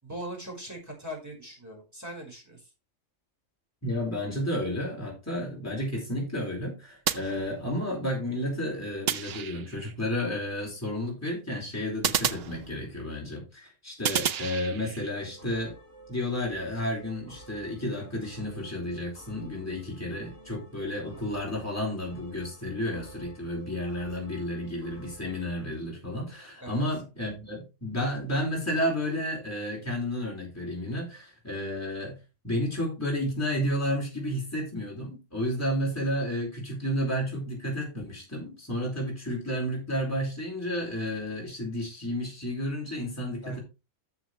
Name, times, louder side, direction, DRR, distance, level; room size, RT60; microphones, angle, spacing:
voice 1, 0.0-2.7 26.6-26.8 43.4-43.6, equal, 15° right, 0 dB, 5.0 m, -40 dB
voice 2, 3.8-15.7 16.1-32.2 32.4-43.6, equal, 10° left, -3 dB, 4.4 m, -31 dB
sound 1, 7.1-8.0 9.1-9.9 12.0-13.2 14.0-15.1, right 8 dB, 60° right, 0.8 m, -31 dB
sound 2, 15.1-25.7, right 1 dB, 85° right, 5.6 m, -51 dB
12.5 x 7.2 x 3.3 m, 0.27 s
omnidirectional pair, 1.3 m